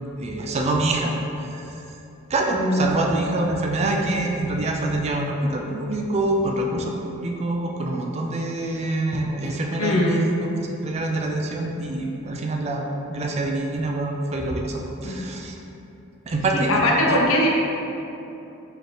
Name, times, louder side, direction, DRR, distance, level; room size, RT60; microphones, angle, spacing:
voice 1, 0.2-1.1 1.5-1.6 2.3-10.3 10.8-15.6 16.3-16.7 17.1-17.2, right 2 dB, 30° right, 1 dB, 0.3 m, -25 dB
voice 2, 2.5-2.9 9.8-10.3 15.0-15.3 16.5-17.5, left 1 dB, 70° left, -2 dB, 0.7 m, -21 dB
4.9 x 2.9 x 3.1 m, 2.9 s
head